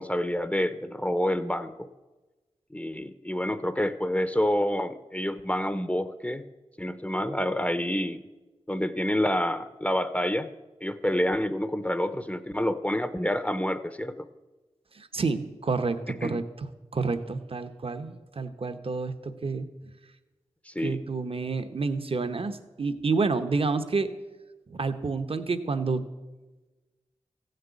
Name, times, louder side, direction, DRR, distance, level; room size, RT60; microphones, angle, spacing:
voice 1, 0.0-1.9 2.7-6.4 6.8-8.2 8.7-10.5 10.8-14.2 16.2-16.4 20.7-21.0, left 1 dB, 10° left, 11 dB, 0.7 m, -28 dB
voice 2, 15.0-16.4 16.9-19.7 20.8-24.1 24.7-26.0, right 4 dB, 50° right, 10 dB, 1.0 m, -29 dB
15.0 x 6.7 x 9.2 m, 1.2 s
cardioid pair, 55°, 12 cm